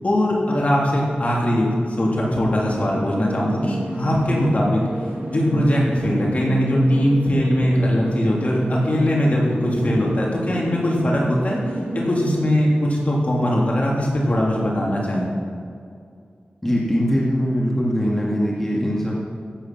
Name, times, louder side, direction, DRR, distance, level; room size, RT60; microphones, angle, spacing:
voice 1, 0.0-4.8 5.3-11.6 11.9-15.3, equal, 45° left, -3 dB, 3.2 m, -20 dB
sound 1, 2.7-12.4, right 1 dB, 55° right, 2.0 m, -31 dB
voice 2, 16.6-19.1, equal, 10° left, -4 dB, 2.3 m, -21 dB
15.0 x 8.6 x 6.1 m, 2.3 s
wide cardioid pair, 90°, 3 cm